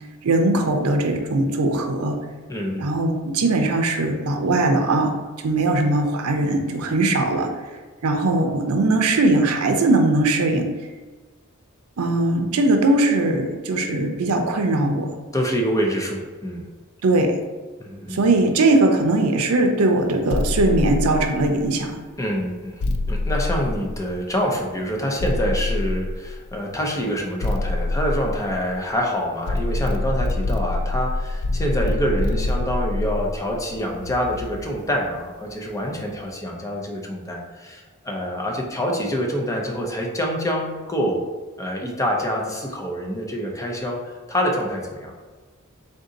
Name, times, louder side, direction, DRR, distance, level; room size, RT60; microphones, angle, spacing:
voice 1, 0.2-2.2 2.8-5.1 5.4-7.5 8.0-10.7 12.0-15.1 17.0-17.4 18.1-22.0, right 2 dB, 80° right, 4 dB, 0.5 m, -20 dB
voice 2, 2.5-2.8 15.3-16.7 17.8-18.2 22.2-41.2 41.6-45.1, equal, 15° left, 0 dB, 0.5 m, -26 dB
sound 1, 20.3-21.8 22.8-24.4 25.2-26.6 27.4-29.0 29.5-34.7, left 2 dB, 65° left, 0.4 m, -26 dB
3.7 x 2.7 x 3.8 m, 1.4 s
head